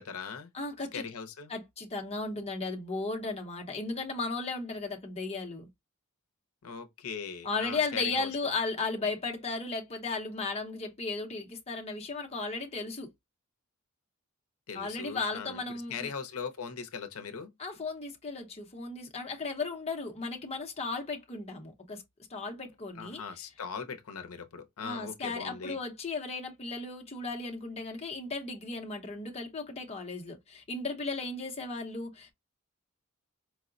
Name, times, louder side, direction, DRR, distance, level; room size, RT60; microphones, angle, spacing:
voice 1, 0.0-0.5 0.9-1.5 6.6-8.3 14.7-17.5 23.0-25.8, left 5 dB, 80° left, 0.6 m, -40 dB
voice 2, 0.5-1.0 1.5-5.7 7.4-13.1 14.7-16.1 17.6-22.0 22.3-23.2 24.8-32.3, left 3 dB, 30° left, 0.7 m, -35 dB
4.6 x 2.0 x 2.4 m
head